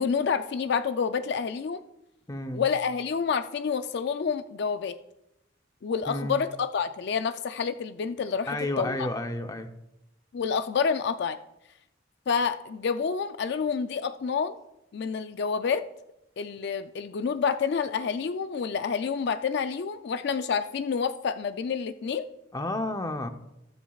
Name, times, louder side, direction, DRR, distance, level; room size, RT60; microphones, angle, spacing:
voice 1, 0.0-1.8 2.5-4.9 5.8-9.0 10.3-11.4 12.3-14.6 14.9-15.8 16.4-22.3, left 6 dB, 60° left, 10 dB, 0.4 m, -28 dB
voice 2, 2.3-2.6 6.1-6.4 8.5-9.7 22.5-23.3, left 1 dB, 20° left, 7 dB, 0.6 m, -31 dB
20.0 x 7.3 x 2.4 m, 0.88 s
head